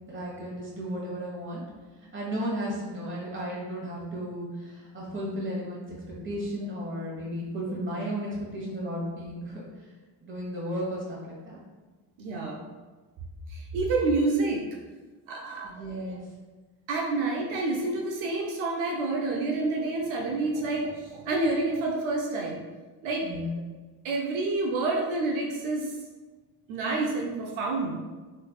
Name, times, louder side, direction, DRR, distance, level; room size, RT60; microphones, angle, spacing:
voice 1, 0.1-1.6 2.1-6.0 6.2-9.6 10.2-11.6 15.6-16.2 23.2-23.6, equal, 25° right, -5 dB, 1.3 m, -34 dB
voice 2, 12.2-12.6 13.5-14.6 15.3-16.2 16.9-22.6 23.0-23.3 24.0-25.9 26.7-27.9, right 3 dB, 85° right, -1 dB, 0.7 m, -28 dB
3.3 x 3.2 x 2.3 m, 1.3 s
supercardioid pair, 80°, 47 cm